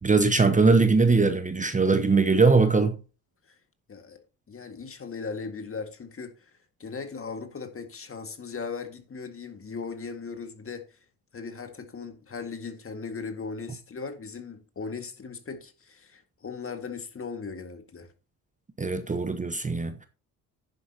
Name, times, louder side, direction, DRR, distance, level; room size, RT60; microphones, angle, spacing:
voice 1, 0.0-3.0 18.8-20.1, right 4 dB, 20° right, 1.0 m, -21 dB
voice 2, 4.5-6.5 6.8-11.0 11.3-18.1, left 5 dB, 30° left, 2.0 m, -38 dB
10.5 x 10.0 x 2.9 m
hypercardioid pair, 60°, 43 cm